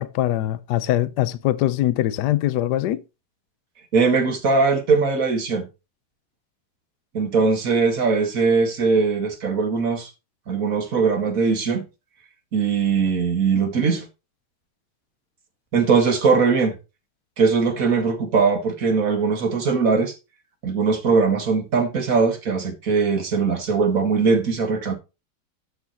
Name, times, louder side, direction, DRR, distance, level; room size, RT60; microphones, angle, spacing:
voice 1, 0.0-3.0, left 13 dB, 70° left, 1.0 m, -22 dB
voice 2, 3.9-5.6 7.1-10.1 10.5-11.8 12.5-14.1 15.7-16.8 17.4-20.1 20.6-24.9, right 5 dB, 40° right, 2.0 m, -20 dB
13.0 x 6.2 x 3.0 m
omnidirectional pair, 2.3 m